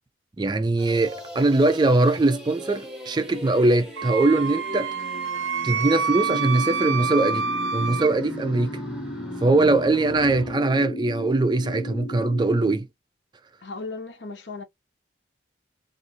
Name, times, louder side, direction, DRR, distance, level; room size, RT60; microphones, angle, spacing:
voice 1, 0.4-4.9 5.6-7.4 7.7-8.7 9.4-12.9, right 2 dB, 25° right, 0.3 m, -21 dB
sound 1, 0.8-10.5, equal, 5° right, 0.9 m, -39 dB
Wind instrument woodwind instrument, 4.0-8.1, right 6 dB, 85° right, 0.5 m, -27 dB
sound 2, 6.2-12.7, left 1 dB, 55° left, 0.5 m, -35 dB
voice 2, 13.6-14.6, left 3 dB, 70° left, 0.9 m, -36 dB
2.6 x 2.4 x 2.9 m
head